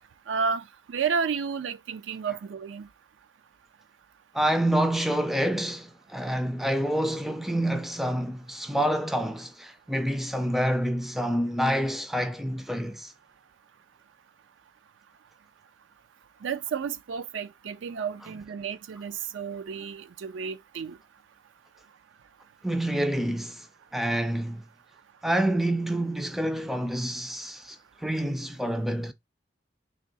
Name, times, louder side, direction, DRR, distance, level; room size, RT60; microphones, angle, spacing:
voice 1, 0.3-2.9 16.4-21.0, right 6 dB, 80° right, 0.4 m, -31 dB
voice 2, 4.3-13.1 22.6-23.7 23.9-24.6 25.2-29.1, right 1 dB, ahead, 0.3 m, -27 dB
3.5 x 2.7 x 3.9 m
head